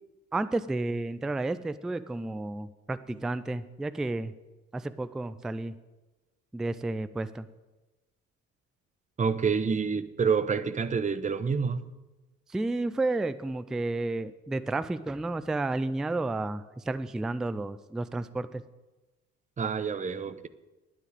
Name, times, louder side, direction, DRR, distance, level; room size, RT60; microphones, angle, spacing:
voice 1, 0.3-4.3 4.7-5.8 6.5-7.5 12.5-18.6, right 2 dB, ahead, 0.3 m, -31 dB
voice 2, 9.2-11.9 19.6-20.5, right 5 dB, 20° right, 0.7 m, -28 dB
9.8 x 8.5 x 8.8 m
figure-of-eight pair, 45°, 42 cm